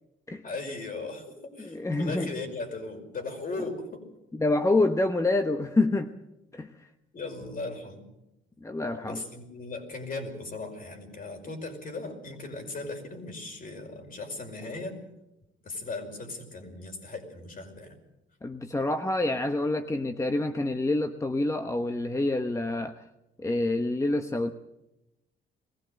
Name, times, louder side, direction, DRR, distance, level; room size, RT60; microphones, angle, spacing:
voice 1, 0.4-4.0 7.1-8.1 9.0-15.0 15.6-18.0, left 3 dB, 45° left, 4 dB, 5.4 m, -38 dB
voice 2, 1.6-2.3 4.3-6.1 6.5-6.9 8.6-9.2 18.4-23.0 23.4-24.5, left 2 dB, 15° left, 7 dB, 1.0 m, -27 dB
21.0 x 16.0 x 7.8 m, 0.90 s
cardioid pair, 90°, 20 cm